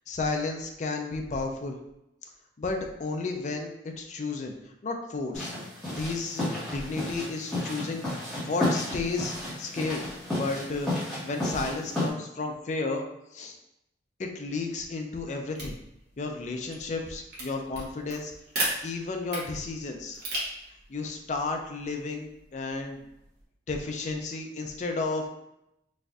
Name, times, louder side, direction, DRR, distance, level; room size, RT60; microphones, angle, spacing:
voice 1, 0.1-1.8 2.6-4.5 4.8-5.5 5.9-8.0 8.4-13.0 13.3-13.6 14.2-15.8 16.2-18.3 18.8-20.2 20.9-23.1 23.7-25.3, left 3 dB, 40° left, 3 dB, 0.4 m, -32 dB
sound 1, 5.3-12.1, left 1 dB, ahead, 1.1 m, -32 dB
sound 2, 15.5-23.4, right 1 dB, 55° right, 1.0 m, -38 dB
4.1 x 2.5 x 2.4 m, 0.85 s
head